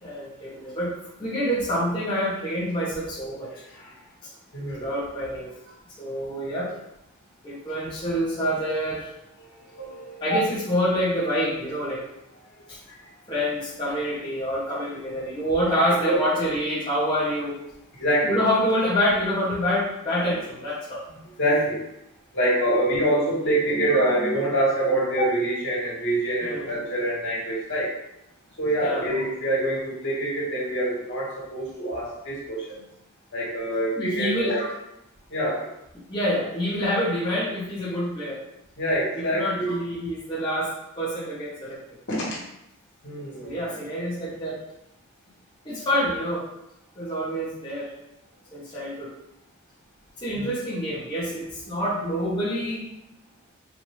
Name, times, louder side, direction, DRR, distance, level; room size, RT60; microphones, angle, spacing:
voice 1, 0.0-3.5 4.8-6.7 7.4-9.1 10.2-12.0 12.7-12.8 13.3-17.6 18.2-21.0 26.4-26.7 28.8-29.0 33.9-34.6 36.1-38.4 39.2-41.8 43.4-44.6 45.6-46.5 47.0-47.9 48.5-49.1 50.2-52.8, equal, 20° left, -9 dB, 0.8 m, -27 dB
voice 2, 3.5-3.9 4.5-4.8 9.4-10.4 13.0-13.1 16.1-16.2 17.9-18.4 20.2-20.3 21.4-21.8 22.3-27.9 28.6-32.8 33.3-34.7 35.3-35.7 38.8-39.8 42.1-42.3 43.0-43.7 50.3-50.5, right 1 dB, 55° left, -6 dB, 1.5 m, -25 dB
4.1 x 2.6 x 3.1 m, 0.85 s
head